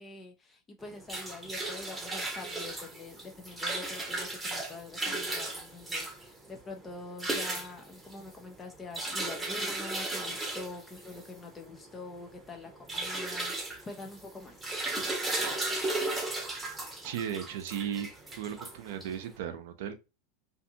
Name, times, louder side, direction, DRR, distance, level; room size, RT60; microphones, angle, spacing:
voice 1, 0.0-14.6, left 3 dB, 20° left, 0.5 m, -45 dB
sound 1, 0.8-19.3, right 2 dB, 10° right, 0.8 m, -36 dB
voice 2, 17.0-18.1 18.3-19.9, right 9 dB, 65° right, 0.5 m, -36 dB
2.5 x 2.5 x 2.6 m
hypercardioid pair, 95°, 0 cm